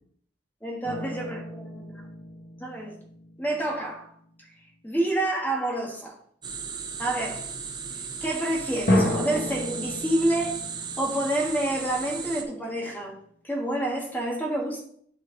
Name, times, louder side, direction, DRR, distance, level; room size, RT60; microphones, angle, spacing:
voice 1, 0.6-1.8 2.6-3.0 3.4-4.1 4.8-6.2 7.0-7.5 8.2-10.6 11.0-13.2 13.4-14.8, right 1 dB, 10° left, -1 dB, 1.4 m, -28 dB
sound 1, 0.8-4.0 8.9-12.5, left 1 dB, 55° left, 1.7 m, -31 dB
sound 2, 6.4-12.4, right 6 dB, 25° right, 0.8 m, -36 dB
10.5 x 4.4 x 3.8 m, 0.62 s
head